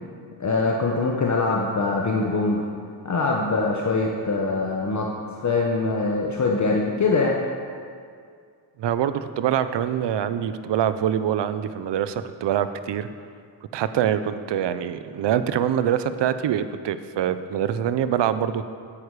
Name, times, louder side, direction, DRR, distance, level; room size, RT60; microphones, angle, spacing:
voice 1, 0.4-2.6 3.0-5.1 5.4-7.4, left 3 dB, 40° left, -1 dB, 1.1 m, -23 dB
voice 2, 8.8-13.1 13.7-18.6, right 9 dB, 65° right, 12 dB, 0.7 m, -24 dB
9.8 x 8.3 x 4.8 m, 2.2 s
cardioid pair, 80°, 46 cm